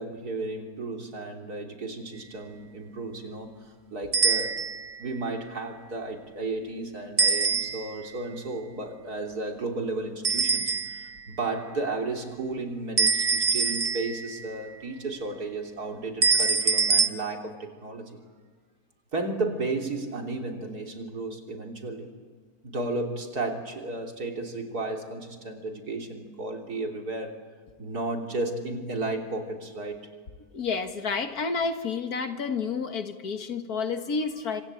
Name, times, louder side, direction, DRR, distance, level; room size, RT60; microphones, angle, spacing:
voice 1, 0.0-4.6 5.0-18.2 19.1-22.1 22.6-27.4 27.8-30.1, right 2 dB, 75° right, 2 dB, 3.7 m, -33 dB
sound 1, 4.1-4.9 7.2-8.1 10.2-11.2 13.0-14.4 16.2-17.1, right 4 dB, 35° right, 0.7 m, -24 dB
voice 2, 30.5-34.6, left 5 dB, 75° left, 7 dB, 2.1 m, -30 dB
26.0 x 26.0 x 8.8 m, 1.5 s
omnidirectional pair, 1.7 m